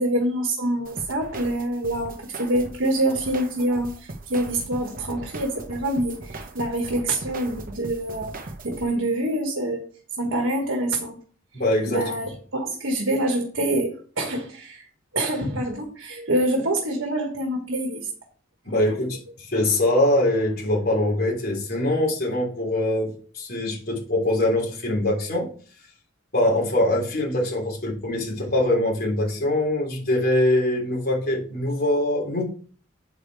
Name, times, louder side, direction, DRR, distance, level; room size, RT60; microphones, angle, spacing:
voice 1, 0.0-8.3 8.6-9.9 10.2-11.2 11.9-14.8 15.1-18.1, right 1 dB, 65° right, 2 dB, 1.4 m, -26 dB
sound 1, 0.9-8.8, right 2 dB, 40° right, 0.9 m, -39 dB
voice 2, 11.5-12.0 18.7-25.5 26.3-32.4, left 1 dB, 50° left, -1 dB, 3.4 m, -23 dB
8.1 x 5.1 x 4.7 m, 0.43 s
head